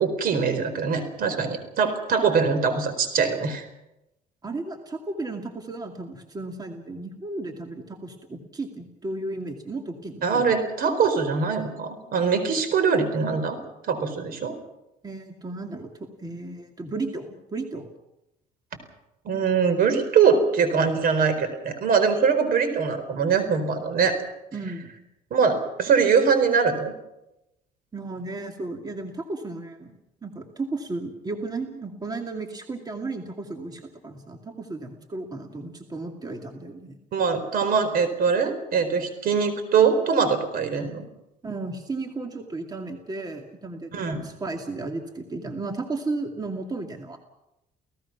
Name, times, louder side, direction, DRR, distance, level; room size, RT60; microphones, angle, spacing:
voice 1, 0.0-3.7 10.2-13.6 13.9-14.5 19.2-24.2 25.3-26.9 37.1-41.1 43.9-44.3, right 5 dB, 60° right, 10 dB, 4.4 m, -22 dB
voice 2, 4.4-10.5 15.0-17.9 24.5-25.1 27.9-29.9 30.2-37.0 41.4-47.2, right 3 dB, 25° right, 4 dB, 2.4 m, -34 dB
30.0 x 17.5 x 6.0 m, 0.91 s
cardioid pair, 110°, 17 cm